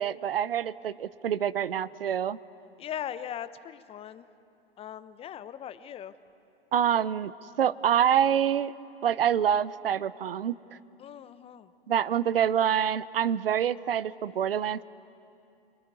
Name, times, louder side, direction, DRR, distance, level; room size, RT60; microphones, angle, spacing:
voice 1, 0.0-2.4 6.7-7.3 7.6-8.7 9.0-10.6 11.9-14.8, right 9 dB, 70° right, 18 dB, 0.9 m, -26 dB
voice 2, 2.8-4.3 4.8-6.2 11.0-11.7, left 9 dB, 20° left, 14 dB, 0.9 m, -39 dB
29.0 x 21.5 x 9.6 m, 2.6 s
figure-of-eight pair, 110°, 30 cm